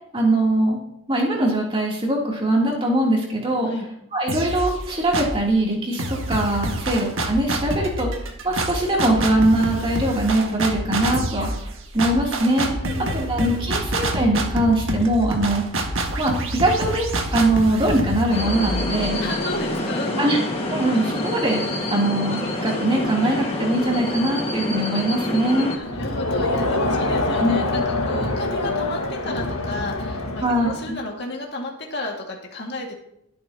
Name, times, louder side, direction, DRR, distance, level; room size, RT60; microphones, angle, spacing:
voice 1, 0.1-0.8 1.1-3.7 4.1-11.5 11.9-12.7 13.1-15.6 16.2-19.2 20.2-20.4 20.7-21.6 21.9-25.7 27.4-27.6 30.4-30.9, right 1 dB, 25° right, -3 dB, 3.2 m, -21 dB
sound 1, 4.3-5.5 6.0-19.7, right 1 dB, 60° right, 1.8 m, -27 dB
voice 2, 12.8-13.3 13.6-13.8 19.2-20.4 25.7-32.9, left 2 dB, 50° left, -1 dB, 2.2 m, -32 dB
sound 2, 18.3-25.8, left 1 dB, 25° left, 1.8 m, -27 dB
Crowd, 25.8-30.9, left 2 dB, 85° left, 1.8 m, -25 dB
21.5 x 8.8 x 3.0 m, 0.77 s
head